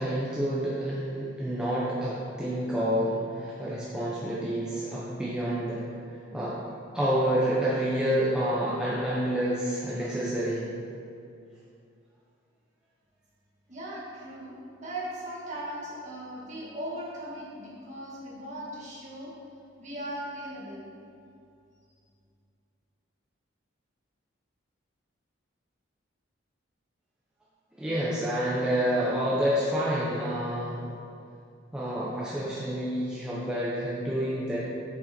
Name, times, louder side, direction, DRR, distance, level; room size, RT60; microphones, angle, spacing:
voice 1, 0.0-5.8 6.3-6.6 6.9-10.6 27.8-30.8 31.7-34.6, equal, 5° right, -8 dB, 0.9 m, -28 dB
voice 2, 13.7-19.3 19.8-20.9, right 1 dB, 35° right, -6 dB, 2.0 m, -38 dB
7.8 x 6.8 x 4.5 m, 2.4 s
head